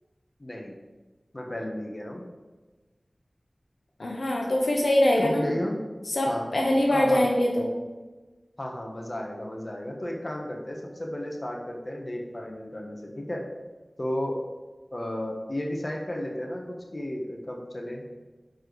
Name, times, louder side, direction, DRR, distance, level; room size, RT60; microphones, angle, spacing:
voice 1, 0.4-0.7 1.3-2.3 5.2-5.7 6.3-6.5 6.9-7.3 8.6-13.4 14.0-14.4 14.9-18.0, left 1 dB, 35° left, 0 dB, 1.3 m, -33 dB
voice 2, 4.0-5.4 6.1-7.7, left 1 dB, 80° left, -1 dB, 1.0 m, -23 dB
5.0 x 4.6 x 6.1 m, 1.2 s
wide cardioid pair, 45°, 0 cm